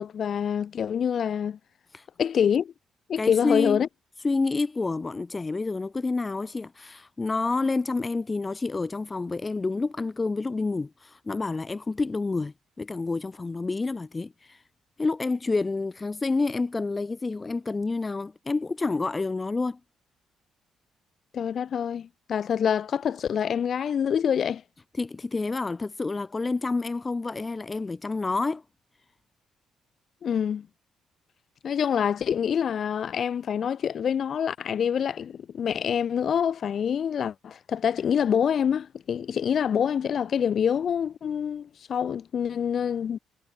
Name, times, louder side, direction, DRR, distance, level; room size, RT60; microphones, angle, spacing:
voice 1, 0.0-1.6 2.2-2.7 3.1-3.9 21.3-24.6 30.2-30.7 31.6-43.2, left 8 dB, 55° left, 5.6 m, -26 dB
voice 2, 3.2-3.8 4.2-14.6 15.0-19.8 24.9-28.6, left 3 dB, 25° left, 1.8 m, -28 dB
cardioid pair, 90°, 0 cm